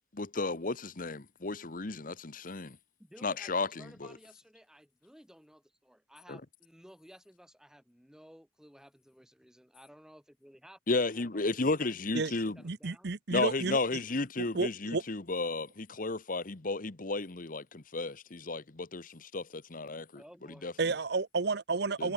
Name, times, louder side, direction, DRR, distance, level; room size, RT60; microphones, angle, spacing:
voice 1, 0.1-2.8 3.2-4.1 6.3-6.4 10.9-12.6 13.3-20.2 20.6-20.7 22.0-22.1, left 3 dB, 45° left, 1.1 m, -33 dB
voice 2, 3.0-13.1 20.1-20.7, equal, 5° right, 3.7 m, -57 dB
voice 3, 12.6-13.8 14.4-15.0 20.8-22.1, right 3 dB, 60° right, 0.8 m, -31 dB
head